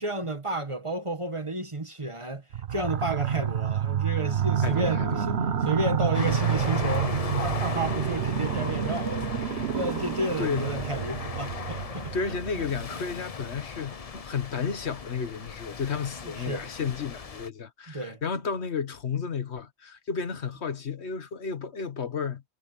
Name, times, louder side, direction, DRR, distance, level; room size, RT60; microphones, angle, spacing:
voice 1, 0.0-2.4 2.7-12.4 16.3-16.7 17.9-18.2, right 1 dB, 30° right, 1.7 m, -32 dB
sound 1, 2.5-13.0, right 8 dB, 75° right, 1.3 m, -29 dB
voice 2, 4.6-5.2 10.4-10.7 12.1-22.4, left 6 dB, 85° left, 1.6 m, -32 dB
sound 2, 6.1-17.5, left 5 dB, 35° left, 0.8 m, -37 dB
omnidirectional pair, 1.1 m